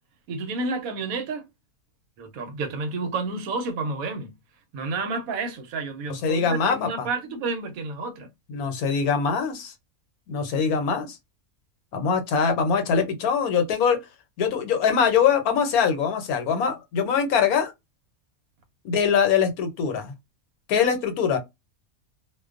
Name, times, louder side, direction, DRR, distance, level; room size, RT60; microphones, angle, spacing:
voice 1, 0.3-1.5 2.2-4.3 4.7-8.3, right 3 dB, 75° right, 1.0 m, -30 dB
voice 2, 6.1-7.1 8.5-9.7 10.3-11.2 11.9-14.0 14.4-17.7 18.8-20.1 20.7-21.4, left 6 dB, 75° left, 1.1 m, -23 dB
2.5 x 2.2 x 2.4 m
omnidirectional pair, 1.6 m